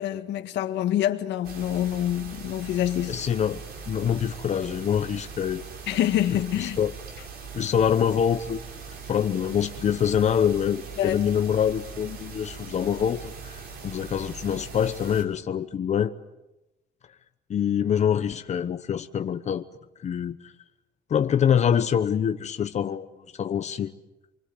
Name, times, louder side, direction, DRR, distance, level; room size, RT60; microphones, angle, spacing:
voice 1, 0.0-3.2 5.9-6.8 11.0-11.2, left 12 dB, 80° left, 1.8 m, -26 dB
sound 1, 1.4-15.2, right 5 dB, 60° right, 5.5 m, -41 dB
voice 2, 3.1-3.6 3.9-5.6 6.3-6.9 7.5-8.6 9.1-13.6 13.8-16.1 17.5-19.6 20.0-20.5 21.1-23.1 23.4-23.9, left 8 dB, 40° left, 1.0 m, -25 dB
28.5 x 24.0 x 7.9 m
cardioid pair, 165°, 18 cm